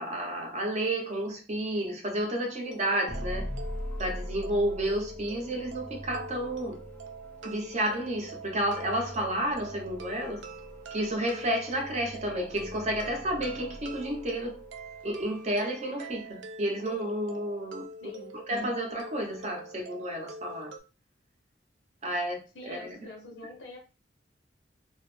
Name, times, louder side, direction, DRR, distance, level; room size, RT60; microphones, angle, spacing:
voice 1, 0.0-3.5 4.0-6.8 7.4-10.4 10.9-14.6 15.0-17.8 18.3-20.7 22.0-23.0, right 1 dB, 40° right, 0.7 m, -31 dB
sound 1, 2.6-20.8, right 2 dB, 80° right, 0.4 m, -45 dB
sound 2, 3.1-15.2, equal, 10° left, 0.4 m, -42 dB
voice 2, 18.0-18.4 22.5-23.8, left 2 dB, 90° left, 0.7 m, -45 dB
2.4 x 2.0 x 3.1 m
head